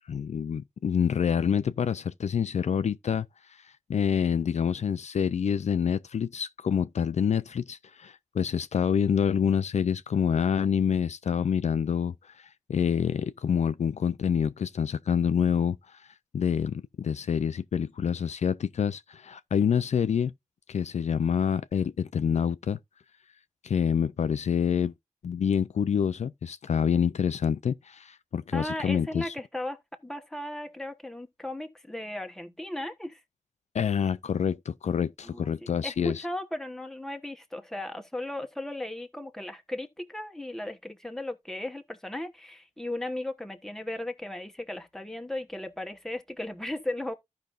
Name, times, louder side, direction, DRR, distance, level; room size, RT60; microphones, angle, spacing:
voice 1, 0.1-16.1 16.3-20.3 20.7-22.8 23.6-24.9 25.2-29.3 33.7-36.2, left 7 dB, 60° left, 0.4 m, -27 dB
voice 2, 28.5-33.2 35.2-35.5 35.8-47.1, left 1 dB, 5° left, 1.2 m, -36 dB
14.5 x 5.2 x 2.5 m
wide cardioid pair, 115°, 13 cm